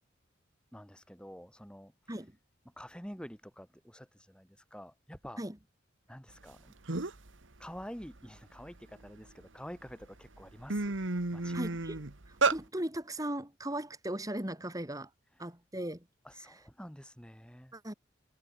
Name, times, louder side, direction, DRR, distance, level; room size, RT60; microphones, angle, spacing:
voice 1, 0.7-2.2 2.6-5.4 6.1-6.8 7.6-11.0 11.3-11.6 16.2-17.8, equal, 5° left, 6.6 m, -48 dB
sound 1, 6.5-6.6 6.9-7.3 7.8-9.3 9.9-10.1 10.4-12.6, right 3 dB, 85° right, 1.7 m, -32 dB
voice 2, 11.5-15.1 15.4-16.1 17.7-17.9, right 1 dB, 20° right, 2.9 m, -38 dB
head